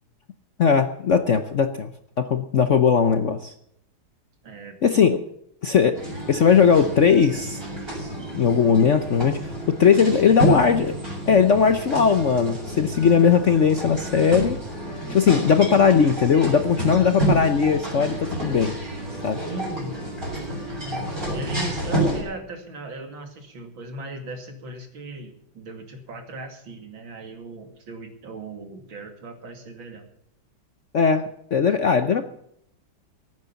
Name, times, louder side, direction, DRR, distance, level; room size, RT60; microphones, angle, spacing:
voice 1, 0.6-1.9 2.2-3.5 4.8-5.2 5.6-6.0 6.3-7.6 8.3-10.9 11.3-14.6 15.1-18.7 19.2-19.4 30.9-31.2 31.5-32.3, left 6 dB, 55° left, 9 dB, 0.9 m, -19 dB
voice 2, 4.4-4.8 9.9-10.6 19.5-19.9 20.8-30.1, right 2 dB, 75° right, 5 dB, 3.2 m, -38 dB
sound 1, 5.9-22.2, right 1 dB, 25° right, 6.6 m, -29 dB
17.5 x 9.4 x 7.0 m, 0.72 s
omnidirectional pair, 2.2 m